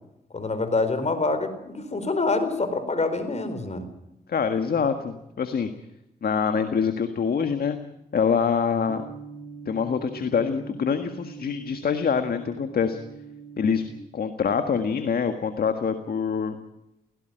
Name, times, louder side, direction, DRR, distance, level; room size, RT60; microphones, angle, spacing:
voice 1, 0.3-3.8, left 3 dB, 40° left, 10 dB, 4.3 m, -26 dB
voice 2, 4.3-5.7 6.2-7.8 8.1-9.0 9.6-13.0 13.6-13.9 14.1-16.6, left 6 dB, 65° left, 8 dB, 1.7 m, -25 dB
sound 1, 8.9-14.0, right 5 dB, 15° left, 6.7 m, -42 dB
17.0 x 17.0 x 9.2 m, 0.87 s
cardioid pair, 60°, 17 cm